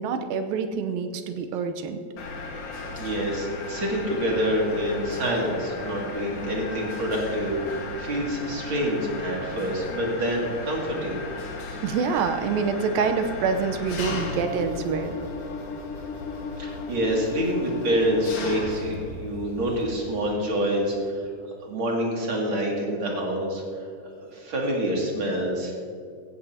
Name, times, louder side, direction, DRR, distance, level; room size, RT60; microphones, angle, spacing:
voice 1, 0.0-2.0 11.8-15.2, right 5 dB, 90° right, 7 dB, 2.6 m, -26 dB
Mechanisms, 2.2-20.2, left 3 dB, 60° left, 2.9 m, -35 dB
voice 2, 3.0-11.2 16.6-21.3 21.7-23.9 24.2-25.7, equal, 40° right, -2 dB, 2.8 m, -27 dB
16.5 x 15.0 x 2.8 m, 2.3 s
omnidirectional pair, 4.0 m